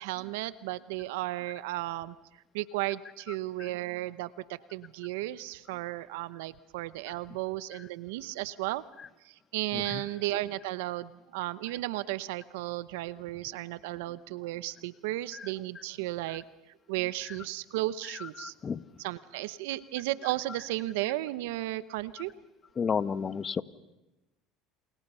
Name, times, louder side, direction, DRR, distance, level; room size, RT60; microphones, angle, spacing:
voice 1, 0.0-2.1 2.5-4.3 4.7-8.8 9.2-16.4 16.9-18.5 19.0-22.3, right 17 dB, 85° right, 17 dB, 0.9 m, -34 dB
voice 2, 18.4-18.8 22.8-23.6, left 6 dB, 35° left, 15 dB, 1.2 m, -31 dB
29.0 x 28.5 x 5.6 m, 1.0 s
supercardioid pair, 95°, 0 cm